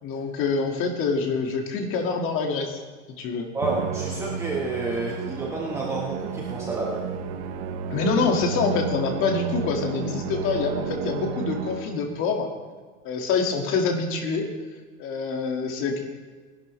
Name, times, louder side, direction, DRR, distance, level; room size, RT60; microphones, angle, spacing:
voice 1, 0.0-2.8 3.2-3.5 7.9-12.5 13.0-14.5 15.0-16.0, left 4 dB, 35° left, 3 dB, 2.0 m, -26 dB
voice 2, 3.5-7.0, right 2 dB, 10° right, -4 dB, 1.3 m, -29 dB
Musical instrument, 3.6-12.1, right 7 dB, 55° right, 1.2 m, -32 dB
19.5 x 11.5 x 3.2 m, 1.5 s
supercardioid pair, 150°, 37 cm